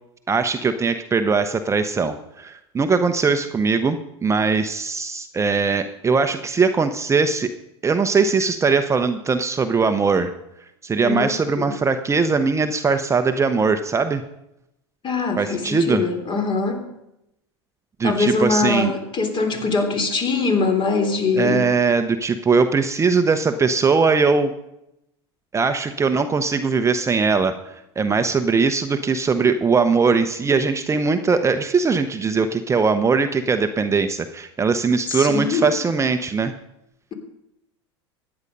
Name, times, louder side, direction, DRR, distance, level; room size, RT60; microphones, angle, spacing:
voice 1, 0.3-7.5 7.8-10.3 10.8-14.2 15.4-16.0 18.0-18.9 21.3-24.5 25.5-36.5, right 4 dB, 20° right, 8 dB, 0.9 m, -20 dB
voice 2, 11.0-11.7 15.0-16.9 18.0-21.7 35.1-35.7, left 4 dB, 35° left, 5 dB, 3.2 m, -22 dB
15.0 x 9.8 x 5.4 m, 0.84 s
hypercardioid pair, 90°, 14 cm